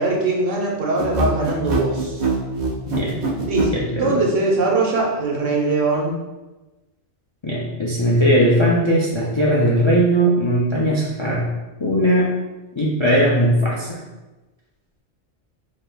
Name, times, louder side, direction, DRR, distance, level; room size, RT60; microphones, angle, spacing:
voice 1, 0.0-2.2 3.5-6.1, right 3 dB, 85° right, -2 dB, 1.2 m, -21 dB
sound 1, 1.0-3.8, right 3 dB, 45° right, 0.6 m, -23 dB
voice 2, 2.9-3.5 3.7-4.2 7.4-11.5 11.8-12.3 12.8-14.0, equal, 40° left, -5 dB, 0.4 m, -19 dB
5.1 x 2.9 x 2.2 m, 1.1 s
omnidirectional pair, 1.2 m